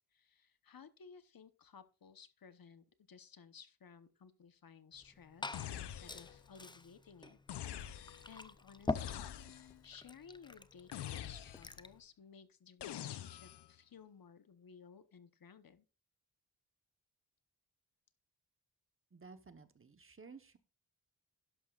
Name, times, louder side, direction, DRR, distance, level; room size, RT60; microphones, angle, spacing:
voice 1, 0.1-7.4 8.2-15.9, left 6 dB, 60° left, 12 dB, 0.9 m, -58 dB
Liquid, 4.9-12.0, left 3 dB, 10° left, 0.4 m, -46 dB
sound 1, 5.5-6.5 7.5-8.4 8.9-9.8 10.9-11.8 12.8-13.7, left 11 dB, 85° left, 0.6 m, -45 dB
voice 2, 19.1-20.6, right 4 dB, 30° right, 10 dB, 1.0 m, -55 dB
12.0 x 11.0 x 2.4 m, 0.31 s
wide cardioid pair, 135°, 40 cm